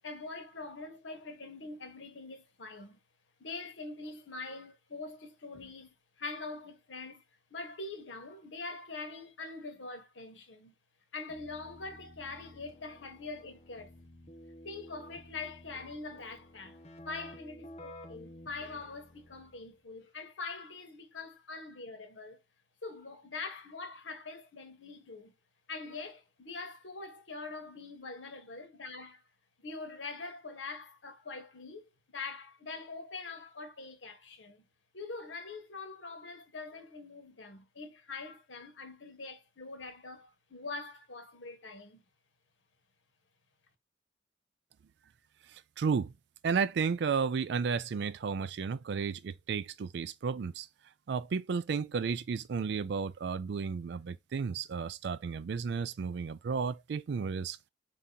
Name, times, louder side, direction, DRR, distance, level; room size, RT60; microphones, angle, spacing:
voice 1, 0.0-3.0 3.4-7.2 7.5-10.8 11.1-13.9 14.6-16.8 17.0-22.4 22.8-25.3 25.7-29.2 29.6-34.6 34.9-42.0, left 3 dB, 80° left, 1.1 m, -44 dB
Keyboard (musical), 11.3-19.7, left 1 dB, 35° left, 1.0 m, -52 dB
voice 2, 45.8-46.1 46.4-50.7 51.1-57.6, right 5 dB, 60° right, 0.4 m, -33 dB
4.7 x 2.8 x 3.8 m
head